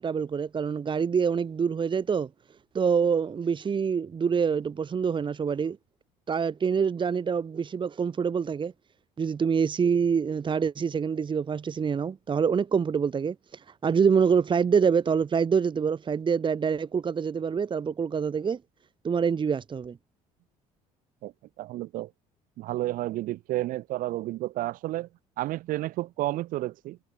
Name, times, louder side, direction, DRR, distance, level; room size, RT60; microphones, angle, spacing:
voice 1, 0.0-2.3 2.7-5.8 6.3-8.7 9.2-13.4 13.8-18.6 19.0-20.0, right 6 dB, 35° right, 2.0 m, -26 dB
voice 2, 21.2-22.1 22.6-25.1 25.4-27.0, right 16 dB, 70° right, 5.3 m, -31 dB
supercardioid pair, 90°, 14 cm